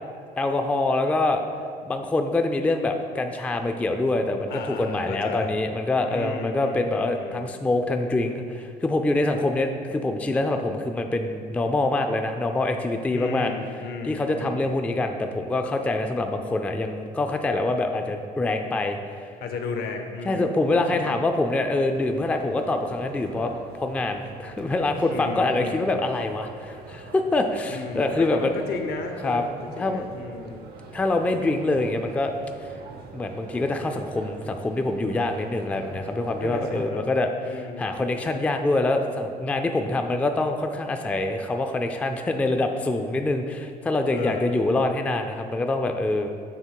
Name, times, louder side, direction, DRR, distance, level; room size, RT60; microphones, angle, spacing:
voice 1, 0.4-1.4 1.9-13.5 14.0-19.0 20.3-28.5 29.2-29.4 29.8-30.1 30.9-32.3 33.1-46.3, left 2 dB, 10° left, 5 dB, 0.3 m, -25 dB
voice 2, 4.5-5.6 6.1-7.5 13.1-14.7 19.4-21.1 25.1-26.0 27.7-30.6 36.4-37.1 37.4-38.0 44.1-44.6, left 4 dB, 70° left, 5 dB, 0.7 m, -34 dB
sound 1, 21.9-36.8, right 4 dB, 70° right, 0.6 m, -44 dB
6.8 x 3.1 x 4.6 m, 2.1 s
cardioid pair, 110°, 17 cm